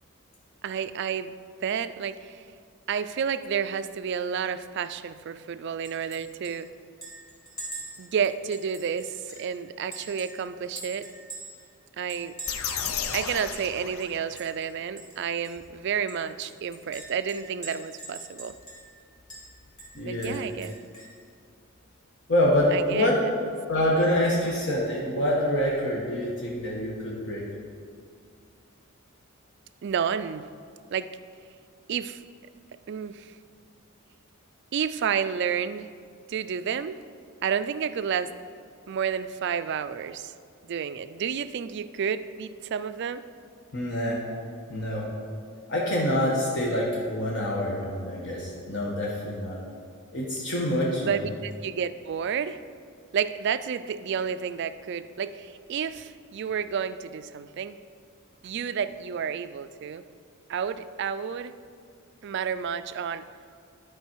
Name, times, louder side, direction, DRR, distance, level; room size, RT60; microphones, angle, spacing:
voice 1, 0.6-1.3 1.6-2.4 2.9-6.7 8.0-11.1 12.0-12.4 12.9-18.5 20.0-20.8 22.7-23.1 24.4-24.5 29.8-30.5 30.9-31.1 31.9-32.2 32.9-33.4 34.7-35.9 36.3-36.9 37.4-38.3 38.9-40.3 40.6-43.2 51.0-52.6 53.1-57.8 58.4-60.0 60.5-61.6 62.2-63.3, right 7 dB, 55° right, 13 dB, 0.3 m, -30 dB
Chink clink, 5.8-6.2 6.4-6.5 7.0-9.5 9.9-11.7 12.1-13.2 13.6-13.7 14.0-14.7 15.0-15.2 15.4-15.5 16.1-19.0 19.3-19.4 19.8-21.2, right 2 dB, 15° left, 2.3 m, -43 dB
sound 1, 12.5-14.6, left 8 dB, 80° left, 0.5 m, -33 dB
voice 2, 19.9-20.4 22.3-23.2 23.7-27.4 43.7-44.2 44.7-45.1 45.7-49.6 50.1-51.3, left 1 dB, 60° left, -4 dB, 1.2 m, -26 dB
11.5 x 4.8 x 4.6 m, 2.2 s
head